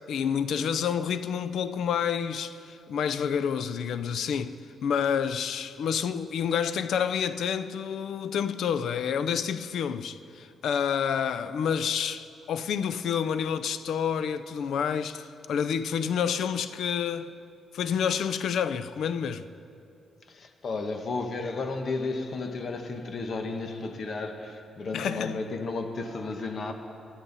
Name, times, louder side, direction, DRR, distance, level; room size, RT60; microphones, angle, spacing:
voice 1, 0.1-17.3 17.7-19.5 24.9-25.4, left 7 dB, 75° left, 0.6 m, -29 dB
voice 2, 20.2-26.7, left 3 dB, 50° left, 1.3 m, -33 dB
23.0 x 12.5 x 4.1 m
cardioid pair, 105°, 0 cm